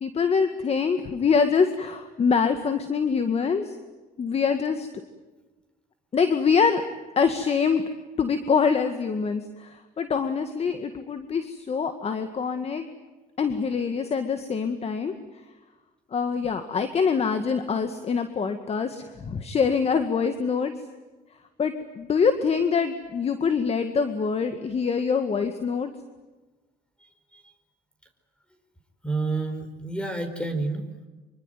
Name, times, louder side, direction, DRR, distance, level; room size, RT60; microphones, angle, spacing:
voice 1, 0.0-3.8 4.2-4.9 6.1-6.8 7.2-7.8 8.2-12.8 13.4-15.1 16.1-20.7 21.6-25.9, left 5 dB, 35° left, 8 dB, 1.9 m, -24 dB
voice 2, 27.0-27.5 29.0-30.9, right 3 dB, 5° left, 8 dB, 4.7 m, -30 dB
25.5 x 24.5 x 9.2 m, 1.2 s
cardioid pair, 110°, 17 cm